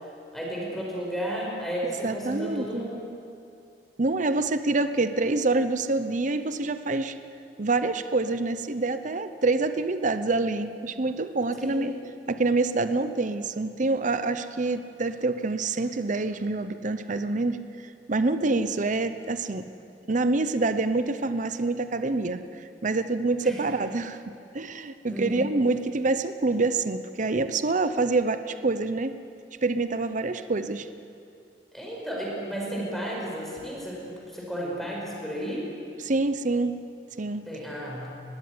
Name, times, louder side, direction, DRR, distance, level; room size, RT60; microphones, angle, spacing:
voice 1, 0.3-3.1 11.6-11.9 23.4-23.6 25.1-25.6 31.7-35.7 37.5-38.2, right 1 dB, ahead, -4 dB, 5.4 m, -33 dB
voice 2, 1.8-2.8 4.0-7.1 7.6-11.9 12.3-17.6 18.1-19.7 20.1-24.2 24.5-29.1 29.6-30.9 36.0-36.7 37.2-37.5, right 3 dB, 45° right, 10 dB, 0.8 m, -26 dB
21.0 x 15.5 x 9.6 m, 2.5 s
head